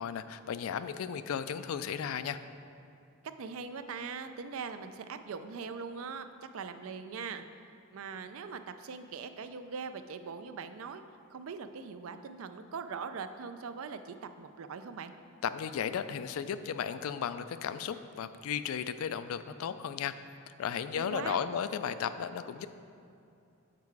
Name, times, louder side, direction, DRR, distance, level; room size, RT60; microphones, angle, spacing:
voice 1, 0.0-2.4 15.4-20.1 20.5-22.7, left 8 dB, 75° left, 12 dB, 0.3 m, -35 dB
voice 2, 3.4-6.3 6.5-7.4 7.9-11.0 11.3-15.1 20.9-21.4, right 5 dB, 70° right, 10 dB, 0.4 m, -41 dB
7.4 x 4.7 x 4.7 m, 2.6 s
head